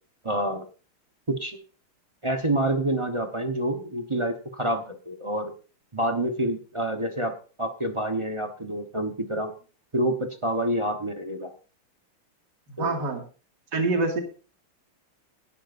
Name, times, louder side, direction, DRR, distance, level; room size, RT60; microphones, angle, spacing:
voice 1, 0.2-0.6 1.3-1.6 2.2-5.5 5.9-9.5 9.9-11.5 12.8-13.0, right 1 dB, 25° right, 5 dB, 0.7 m, -27 dB
voice 2, 12.8-13.2 13.7-14.2, right 3 dB, 50° right, 2 dB, 2.8 m, -25 dB
17.5 x 12.5 x 2.6 m, 0.37 s
omnidirectional pair, 2.4 m